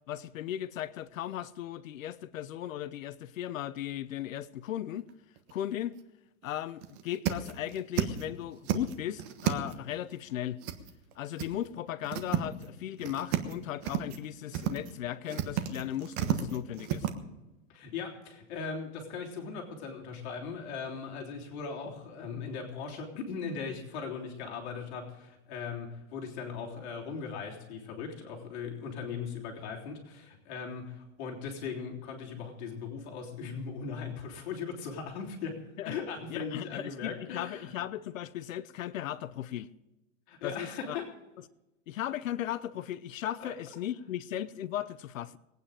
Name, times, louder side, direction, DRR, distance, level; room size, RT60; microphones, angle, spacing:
voice 1, 0.1-5.1 5.5-5.9 6.4-10.6 11.2-17.1 35.8-35.9 36.3-39.7 40.4-41.0 41.9-45.4, left 12 dB, 90° left, 0.8 m, -37 dB
sound 1, 5.1-5.5 5.9-6.0 6.4-6.5 6.8-8.2 8.5-9.9 10.6-11.1 11.4-11.5 11.9-12.7 13.0-13.5 13.8-14.2 14.5-14.9 15.3-17.1, right 12 dB, 40° right, 1.3 m, -32 dB
voice 2, 17.7-37.7 40.3-41.1 43.4-43.5, left 5 dB, 55° left, 3.5 m, -39 dB
20.5 x 9.3 x 5.0 m
supercardioid pair, 150°, 39 cm